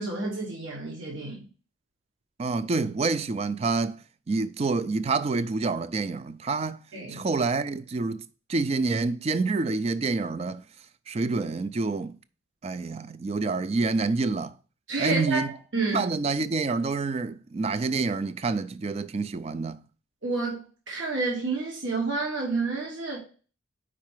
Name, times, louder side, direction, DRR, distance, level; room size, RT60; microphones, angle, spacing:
voice 1, 0.0-1.5 6.9-7.2 14.9-15.4 15.7-16.1 20.2-23.2, right 3 dB, 70° right, 1.4 m, -29 dB
voice 2, 2.4-4.0 4.3-6.8 7.1-10.6 11.1-12.2 12.6-14.5 15.0-15.5 15.9-19.8, right 3 dB, 30° right, 0.3 m, -27 dB
4.9 x 4.8 x 4.6 m
head